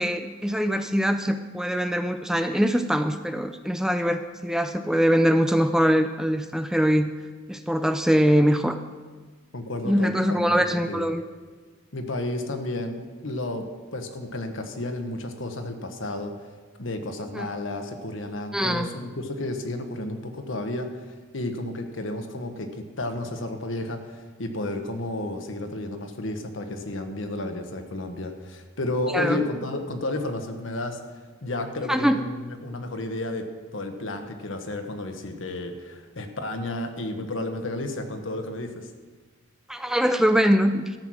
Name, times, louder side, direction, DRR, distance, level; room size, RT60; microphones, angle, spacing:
voice 1, 0.0-7.1 7.5-8.8 9.8-11.2 17.3-17.5 18.5-18.9 29.1-29.4 31.9-32.2 39.7-40.9, equal, 5° right, 8 dB, 0.4 m, -23 dB
voice 2, 9.5-11.1 11.9-13.7 13.9-16.3 16.8-31.0 31.4-38.9, left 2 dB, 70° left, 6 dB, 1.3 m, -32 dB
13.5 x 8.0 x 6.2 m, 1.4 s
head